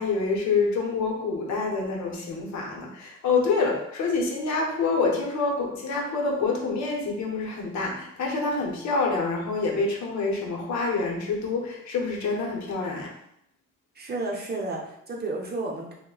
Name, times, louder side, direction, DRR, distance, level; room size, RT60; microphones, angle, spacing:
voice 1, 0.0-13.1, left 4 dB, 65° left, -1 dB, 0.8 m, -27 dB
voice 2, 14.0-15.9, right 2 dB, 35° right, -1 dB, 0.7 m, -32 dB
3.5 x 2.2 x 2.3 m, 0.75 s
cardioid pair, 90°, 30 cm